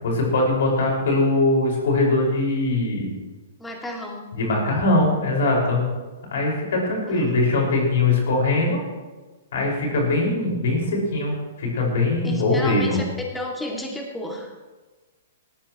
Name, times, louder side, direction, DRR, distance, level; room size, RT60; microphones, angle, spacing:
voice 1, 0.0-3.1 4.3-5.9 6.3-8.8 9.5-13.0, left 2 dB, 60° left, -1 dB, 5.5 m, -21 dB
voice 2, 3.6-4.3 7.1-7.3 12.2-13.0 13.3-14.5, left 1 dB, 10° left, 0 dB, 2.4 m, -32 dB
18.5 x 13.5 x 3.1 m, 1.3 s
hypercardioid pair, 115°, 0 cm